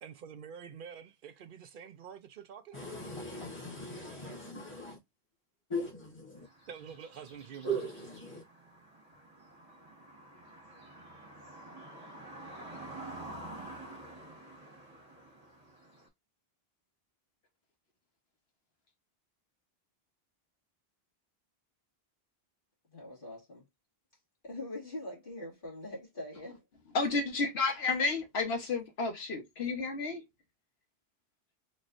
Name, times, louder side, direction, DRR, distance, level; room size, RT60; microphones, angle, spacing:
voice 1, 0.0-2.9 6.7-7.8, right 7 dB, 60° right, 0.7 m, -47 dB
voice 2, 2.7-5.0 5.7-6.5 7.6-8.4, right 1 dB, 30° left, 1.3 m, -38 dB
sound 1, 6.4-16.1, right 1 dB, 35° right, 1.9 m, -49 dB
voice 3, 22.9-23.6 24.4-26.6, left 1 dB, 55° left, 2.4 m, -43 dB
voice 4, 26.9-30.2, left 3 dB, 75° left, 1.4 m, -31 dB
4.2 x 3.2 x 2.5 m
omnidirectional pair, 1.1 m